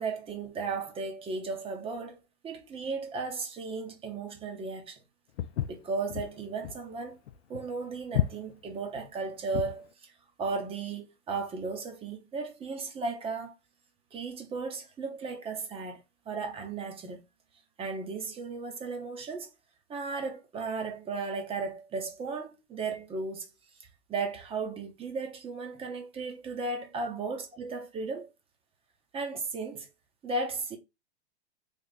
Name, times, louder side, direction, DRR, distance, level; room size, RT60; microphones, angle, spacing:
voice 1, 0.0-2.2 2.4-5.0 5.7-7.2 7.5-10.1 10.4-13.5 14.1-17.2 17.8-19.5 19.9-23.5 24.1-28.3 29.1-29.9 30.2-30.8, right 4 dB, 15° right, 0.8 m, -35 dB
Walk footsteps, 5.4-9.9, left 11 dB, 80° left, 0.5 m, -33 dB
3.4 x 2.4 x 4.0 m
hypercardioid pair, 130°, 33 cm